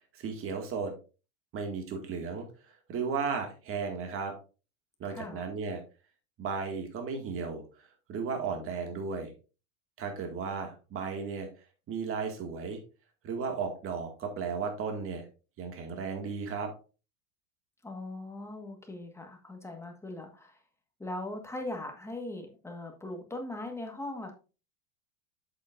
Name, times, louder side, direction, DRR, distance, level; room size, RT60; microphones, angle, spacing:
voice 1, 0.1-0.9 1.5-2.5 2.9-4.3 5.0-5.8 6.4-9.3 10.0-11.5 11.9-12.8 13.2-15.2 15.6-16.7, right 5 dB, 35° right, 4 dB, 2.1 m, -35 dB
voice 2, 5.1-5.4 17.8-20.6 21.0-24.3, left 2 dB, 5° left, 3 dB, 1.5 m, -40 dB
8.1 x 7.9 x 2.6 m, 0.33 s
supercardioid pair, 135°, 40 cm